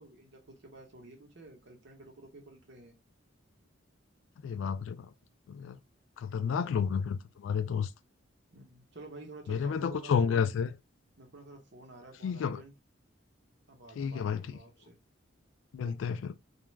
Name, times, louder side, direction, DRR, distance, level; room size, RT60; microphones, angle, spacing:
voice 1, 0.0-2.9 6.4-6.8 8.5-10.5 11.2-12.7 13.7-15.0 15.8-16.2, right 2 dB, 65° right, 0.9 m, -51 dB
voice 2, 4.4-5.1 5.5-5.8 6.2-7.9 9.5-10.7 12.2-12.6 14.0-14.4 15.7-16.3, left 6 dB, 80° left, 0.3 m, -31 dB
2.4 x 2.2 x 3.1 m
head